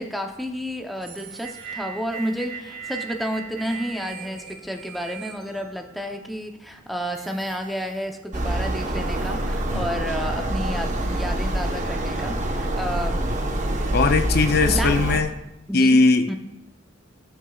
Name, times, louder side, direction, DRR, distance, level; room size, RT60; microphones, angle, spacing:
voice 1, 0.0-13.2 14.6-14.9 15.7-16.0 16.3-16.4, equal, ahead, 4 dB, 0.7 m, -31 dB
sound 1, 0.9-6.1 6.7-6.8 7.1-8.0 8.4-10.1 10.8-11.2, right 6 dB, 85° right, 3.3 m, -40 dB
sound 2, 8.3-15.2, right 1 dB, 40° right, 1.1 m, -25 dB
voice 2, 13.9-15.3 15.7-16.3, left 3 dB, 55° left, 9 dB, 0.6 m, -19 dB
17.5 x 7.2 x 2.4 m, 0.92 s
head